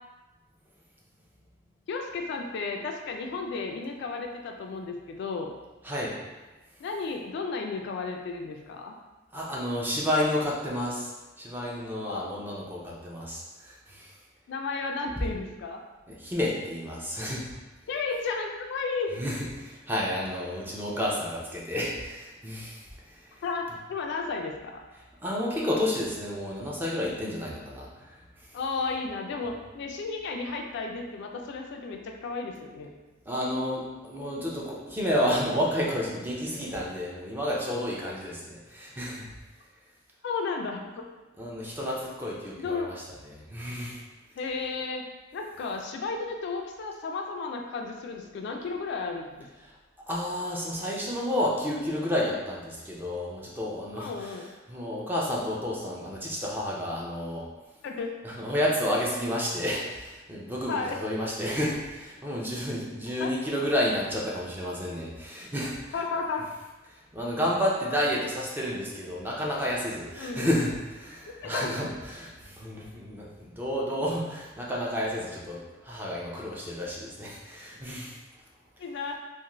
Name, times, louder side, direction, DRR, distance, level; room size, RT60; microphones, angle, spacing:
voice 1, 1.9-5.5 6.8-8.9 12.0-12.4 14.5-15.8 17.9-19.1 23.4-24.7 28.5-32.9 40.2-41.0 42.6-42.9 44.4-45.0 45.3-49.5 54.0-54.5 57.8-58.1 60.7-61.0 63.2-63.3 65.9-66.5 70.2-70.6 71.4-71.7 78.8-79.2, left 4 dB, 60° left, 3 dB, 0.3 m, -33 dB
voice 2, 5.8-6.1 9.3-11.1 11.4-14.1 16.1-17.4 19.2-23.2 25.2-28.2 33.3-39.3 41.4-44.0 49.6-49.7 50.0-54.4 54.7-57.5 58.2-65.9 67.1-78.2, equal, 10° right, -4 dB, 0.4 m, -31 dB
2.5 x 2.5 x 3.0 m, 1.1 s
head